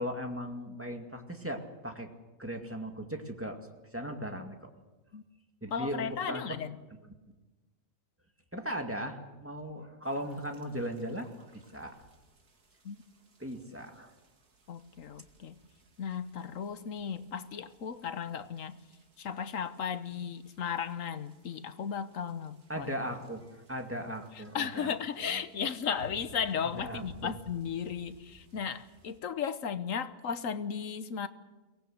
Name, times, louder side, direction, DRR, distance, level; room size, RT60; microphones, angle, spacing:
voice 1, 0.0-2.1 2.4-3.6 3.9-4.6 5.6-6.6 8.5-11.3 11.5-12.0 13.4-14.1 22.7-24.9 25.2-25.4 26.7-27.3, equal, 10° right, 3 dB, 2.2 m, -38 dB
voice 2, 5.7-6.8 12.8-13.0 14.7-15.6 16.0-18.8 19.2-22.9 24.5-31.3, left 7 dB, 65° left, 12 dB, 1.3 m, -35 dB
sound 1, 10.0-29.2, right 2 dB, 90° right, 2.7 m, -58 dB
23.0 x 18.5 x 7.9 m, 1.2 s
omnidirectional pair, 1.6 m